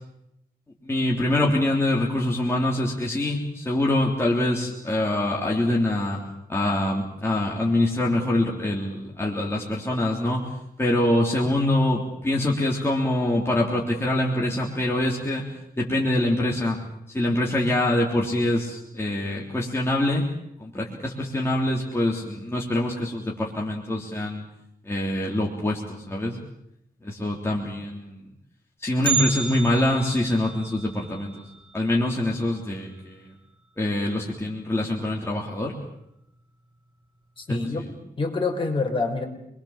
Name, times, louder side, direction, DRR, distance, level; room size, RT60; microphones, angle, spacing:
voice 1, 0.8-6.2 6.5-10.5 10.8-15.5 15.8-16.8 17.1-20.2 20.6-24.4 24.9-26.4 27.0-28.2 28.8-31.4 31.7-33.3 33.8-35.7 37.5-37.7, left 1 dB, 15° left, -2 dB, 3.5 m, -24 dB
Bell, 29.0-33.1 33.4-33.5 34.0-34.1 34.9-35.0 35.7-36.0 36.4-36.5, right 6 dB, 30° right, 3.2 m, -32 dB
voice 2, 37.4-37.8 38.2-39.2, left 3 dB, 35° left, 2 dB, 5.3 m, -26 dB
28.0 x 22.5 x 7.4 m, 0.80 s
wide cardioid pair, 155°, 15 cm